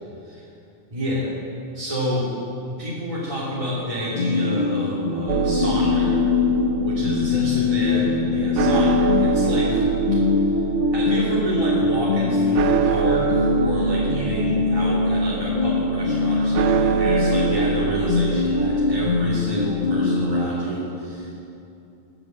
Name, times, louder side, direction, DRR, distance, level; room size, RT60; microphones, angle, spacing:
voice 1, 0.9-1.3 1.7-2.3 2.7-6.3 6.8-9.9 10.1-10.2 10.9-21.5, equal, 25° right, -9 dB, 3.1 m, -29 dB
sound 1, 4.1-20.4, left 3 dB, 45° left, 1.5 m, -22 dB
sound 2, 5.3-19.3, right 7 dB, 80° right, 0.9 m, -26 dB
20.0 x 8.3 x 7.5 m, 2.7 s
omnidirectional pair, 1.2 m